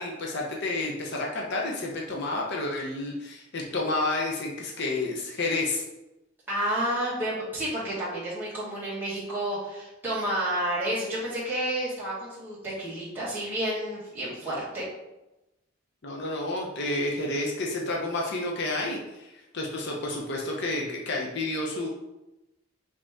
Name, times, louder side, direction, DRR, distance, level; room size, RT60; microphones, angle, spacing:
voice 1, 0.0-5.8 16.0-21.9, left 2 dB, 60° left, -1 dB, 0.8 m, -30 dB
voice 2, 6.5-14.9, right 1 dB, 10° right, -10 dB, 1.6 m, -30 dB
5.1 x 2.9 x 3.6 m, 0.96 s
head